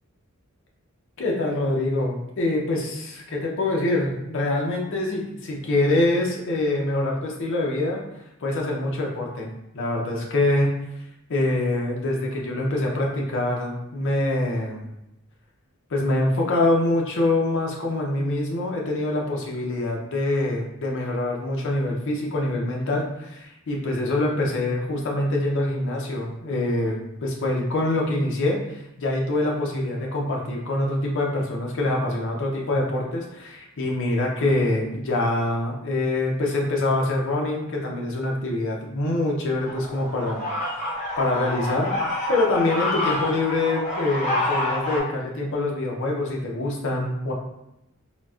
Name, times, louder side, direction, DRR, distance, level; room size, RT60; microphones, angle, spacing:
voice 1, 1.2-8.0 8.4-10.7 11.3-14.9 15.9-28.6 29.0-41.9 42.3-47.3, left 2 dB, 60° left, -1 dB, 0.5 m, -25 dB
sound 1, 39.6-45.0, left 2 dB, 30° left, 0.8 m, -28 dB
3.9 x 2.0 x 2.3 m, 0.86 s
head